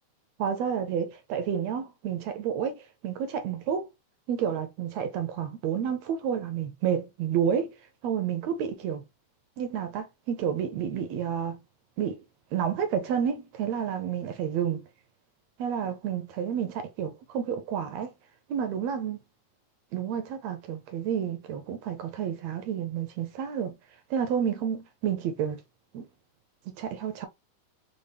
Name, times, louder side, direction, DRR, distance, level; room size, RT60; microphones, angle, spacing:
voice 1, 0.4-3.9 4.3-7.7 8.0-9.0 9.6-11.6 12.0-12.2 12.5-14.8 15.6-18.1 18.5-19.2 19.9-23.8 24.1-25.6 25.9-26.1 26.8-27.3, right 8 dB, 75° right, 1.6 m, -30 dB
5.2 x 2.4 x 3.3 m
omnidirectional pair, 3.5 m